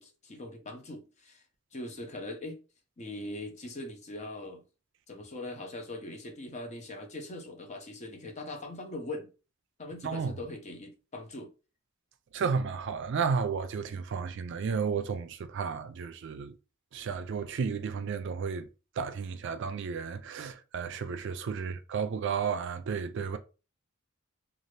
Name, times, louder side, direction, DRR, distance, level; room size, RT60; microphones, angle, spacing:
voice 1, 0.0-1.4 1.7-2.6 3.0-4.6 5.1-9.3 9.8-11.5 21.5-21.8, left 2 dB, 35° left, 0.6 m, -41 dB
voice 2, 12.3-16.5 16.9-18.7 19.0-23.4, right 5 dB, 60° right, 0.3 m, -32 dB
2.6 x 2.4 x 3.2 m
head